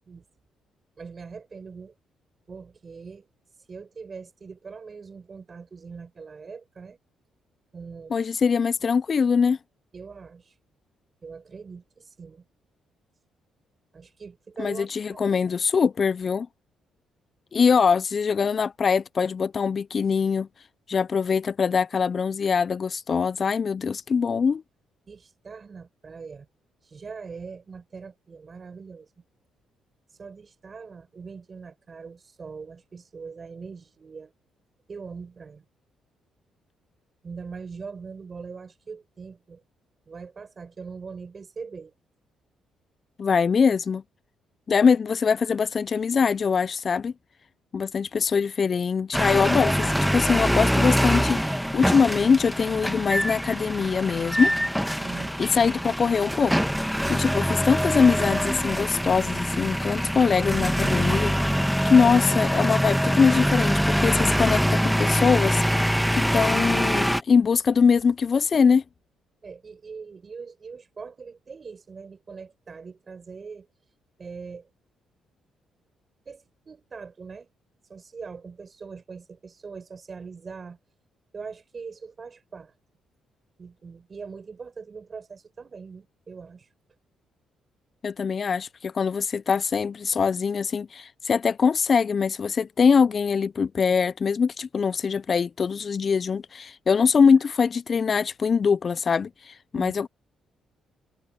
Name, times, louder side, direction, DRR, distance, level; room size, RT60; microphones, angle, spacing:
voice 1, 1.0-1.9 2.5-3.2 3.7-7.0 7.7-8.2 9.9-10.5 11.2-12.4 13.9-15.4 25.1-26.5 26.8-29.1 30.2-34.3 34.9-35.6 37.2-39.6 40.1-41.9 48.7-48.8 55.0-55.4 61.9-62.1 66.2-66.5 69.4-73.7 74.2-74.7 76.2-77.5 77.9-80.8 81.3-82.7 83.6-86.7 99.7-99.9, right 5 dB, 40° right, 4.9 m, -41 dB
voice 2, 8.1-9.6 14.6-16.5 17.5-20.5 20.9-24.6 43.2-44.0 44.7-47.1 47.7-54.5 55.4-56.5 57.1-68.8 88.0-100.1, left 6 dB, 45° left, 0.4 m, -23 dB
sound 1, 49.1-67.2, equal, ahead, 1.3 m, -24 dB
cardioid pair, 90°, 0 cm